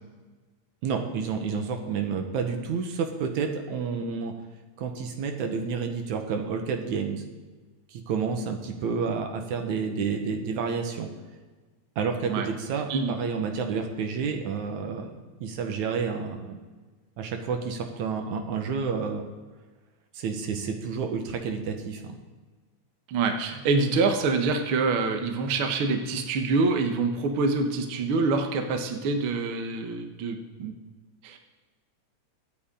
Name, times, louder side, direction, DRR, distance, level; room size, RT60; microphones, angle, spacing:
voice 1, 0.8-4.3 4.8-7.2 7.9-11.1 12.0-15.1 15.4-16.6 17.2-19.2 20.1-22.2, right 5 dB, 75° right, 5 dB, 2.6 m, -30 dB
voice 2, 23.1-30.7 31.2-31.4, right 4 dB, 55° right, 5 dB, 1.7 m, -26 dB
24.0 x 8.8 x 3.8 m, 1.3 s
omnidirectional pair, 3.5 m